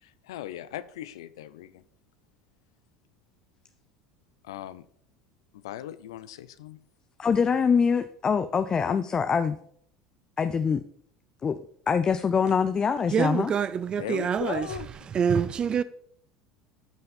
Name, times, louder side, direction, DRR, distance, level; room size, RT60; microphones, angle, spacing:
voice 1, 0.0-1.8 4.4-4.9 5.5-6.8 8.9-9.0 14.0-14.9, left 12 dB, 70° left, 0.6 m, -38 dB
voice 2, 7.2-9.6 10.4-10.8 11.4-11.6 11.9-13.5, left 6 dB, 30° left, 0.6 m, -24 dB
voice 3, 13.1-14.7 15.1-15.8, right 7 dB, 35° right, 0.5 m, -26 dB
13.5 x 5.7 x 5.3 m
hypercardioid pair, 70°, 3 cm